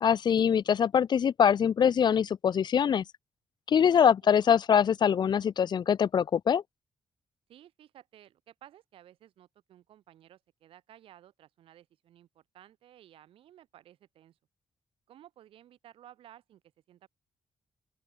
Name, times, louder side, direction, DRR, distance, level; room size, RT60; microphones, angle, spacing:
voice 1, 0.0-3.0 3.7-6.6, left 8 dB, 55° left, 0.5 m, -23 dB
voice 2, 3.7-4.3 7.5-14.4 15.1-16.6 16.9-17.1, right 12 dB, 85° right, 4.2 m, -56 dB
open air
cardioid pair, 70°, 9 cm